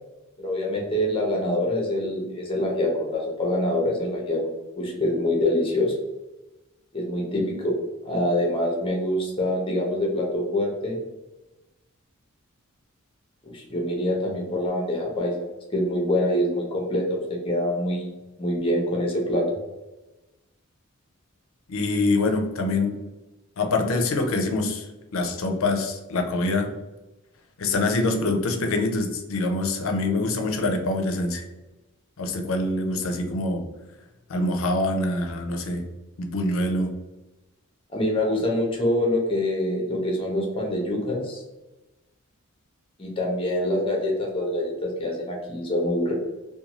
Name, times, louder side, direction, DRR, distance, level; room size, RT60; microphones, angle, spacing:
voice 1, 0.4-4.4 4.8-5.9 6.9-7.7 8.0-11.0 13.4-15.3 15.7-17.2 17.4-18.1 18.4-19.5 37.9-41.4 43.0-46.1, left 1 dB, 25° left, -1 dB, 0.7 m, -25 dB
voice 2, 21.7-22.9 23.6-26.7 27.6-31.4 32.2-33.6 34.3-35.8 36.2-36.9, left 2 dB, 70° left, 4 dB, 0.5 m, -25 dB
2.6 x 2.2 x 2.9 m, 1.1 s
head